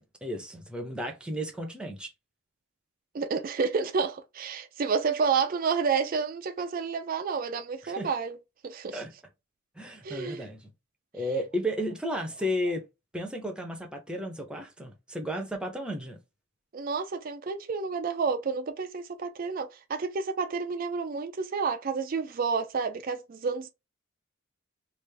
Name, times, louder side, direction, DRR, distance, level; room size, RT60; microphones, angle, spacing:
voice 1, 0.0-2.1 7.8-8.1 8.9-9.1 9.8-10.7 11.1-12.8 13.1-16.2, equal, 5° right, 0.7 m, -33 dB
voice 2, 3.1-8.4 8.6-9.0 10.0-10.5 16.7-23.7, right 5 dB, 40° right, 0.4 m, -30 dB
3.2 x 2.5 x 3.3 m
head